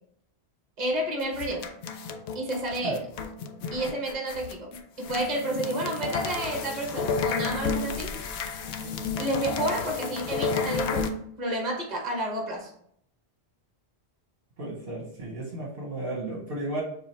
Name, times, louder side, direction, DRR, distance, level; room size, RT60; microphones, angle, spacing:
voice 1, 0.8-1.7 2.3-3.0 3.7-8.2 9.2-12.7, right 1 dB, 40° right, 0 dB, 1.2 m, -30 dB
sound 1, 1.2-11.1, left 5 dB, 85° left, 0.9 m, -32 dB
voice 2, 14.6-16.8, right 2 dB, 60° right, -2 dB, 1.3 m, -33 dB
6.8 x 2.4 x 3.2 m, 0.68 s
omnidirectional pair, 1.1 m